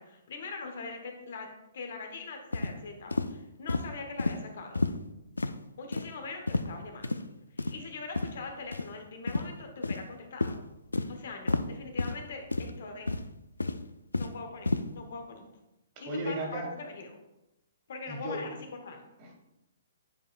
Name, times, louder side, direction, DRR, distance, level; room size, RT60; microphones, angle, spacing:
voice 1, 0.0-1.5 1.7-4.8 5.8-7.1 7.5-10.6 11.1-13.1 14.1-15.4 16.0-17.2 17.9-19.0, left 3 dB, 55° left, 4 dB, 1.0 m, -42 dB
sound 1, 2.5-2.7 3.1-3.3 3.7-3.9 4.2-4.4 4.8-5.0 5.4-5.5 5.9-6.1 6.5-6.7 7.0-7.2 7.6-7.8 8.1-8.3 8.7-8.9 9.3-9.4 9.8-10.1 10.4-10.6 10.9-11.1 11.5-11.6 12.0-12.2 12.5-12.7 13.1-13.3 13.6-14.4 14.7-14.8, left 3 dB, 80° left, 0.3 m, -30 dB
voice 2, 16.1-16.7 18.1-18.4 19.2-19.3, right 1 dB, 30° right, 0 dB, 1.8 m, -34 dB
9.2 x 4.9 x 2.3 m, 0.92 s
figure-of-eight pair, 125°, 0 cm